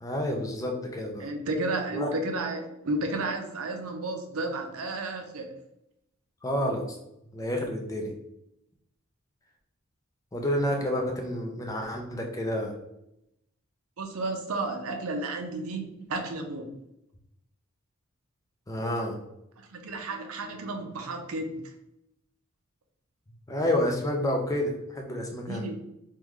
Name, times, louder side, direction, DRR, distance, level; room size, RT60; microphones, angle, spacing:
voice 1, 0.0-1.3 1.9-2.1 6.4-7.0 7.3-8.1 10.3-12.7 18.7-19.2 23.5-25.6, left 1 dB, 15° left, 2 dB, 0.4 m, -29 dB
voice 2, 1.2-5.5 14.0-16.7 19.6-21.5 25.5-25.8, right 2 dB, 80° right, 4 dB, 0.5 m, -32 dB
3.6 x 2.2 x 3.0 m, 0.82 s
head